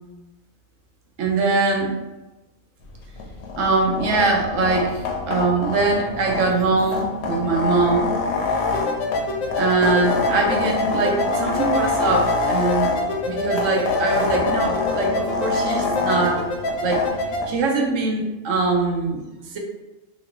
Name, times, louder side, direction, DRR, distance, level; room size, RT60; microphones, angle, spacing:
voice 1, 1.2-2.0 3.6-8.1 9.5-12.9 13.2-16.4 16.8-17.0 17.5-19.6, right 3 dB, 70° right, 1 dB, 1.0 m, -22 dB
sound 1, 2.9-17.6, left 4 dB, 65° left, 0.8 m, -26 dB
sound 2, 8.7-17.5, left 2 dB, 90° left, 1.0 m, -27 dB
3.0 x 2.6 x 2.9 m, 1.1 s
omnidirectional pair, 1.4 m